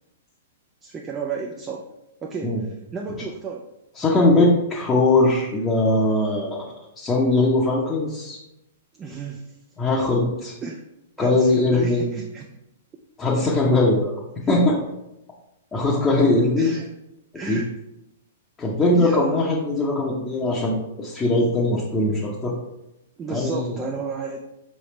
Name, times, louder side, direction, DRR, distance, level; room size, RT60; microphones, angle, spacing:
voice 1, 0.8-1.9 2.2-3.7 6.7-6.8 8.9-9.6 10.6-10.8 11.2-12.5 16.6-16.9 17.3-17.7 18.9-19.5 23.2-24.4, right 4 dB, 20° right, 0 dB, 0.4 m, -32 dB
voice 2, 4.0-6.6 7.0-8.4 9.8-10.5 11.2-12.1 13.2-14.1 14.5-14.8 15.7-16.7 17.5-17.6 18.6-22.5 23.3-23.8, left 2 dB, 15° left, -5 dB, 0.8 m, -20 dB
4.7 x 3.2 x 3.1 m, 0.89 s
hypercardioid pair, 110°, 0 cm